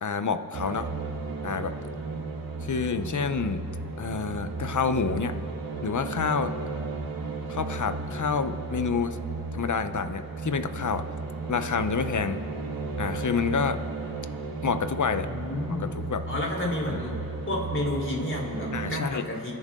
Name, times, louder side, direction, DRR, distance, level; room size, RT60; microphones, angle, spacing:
voice 1, 0.0-0.9 1.4-1.7 2.6-3.6 4.0-5.3 5.8-6.5 7.5-9.2 9.5-11.1 11.5-12.4 13.0-13.8 14.6-15.3 15.8-16.2 16.9-17.0 18.7-19.3, left 5 dB, 55° left, 10 dB, 0.9 m, -28 dB
sound 1, 0.5-19.0, right 3 dB, 75° right, 1.6 m, -34 dB
voice 2, 15.2-15.9 16.3-17.2 17.5-19.5, left 1 dB, 35° left, -1 dB, 4.1 m, -31 dB
29.0 x 10.5 x 3.8 m, 2.8 s
cardioid pair, 55°, 36 cm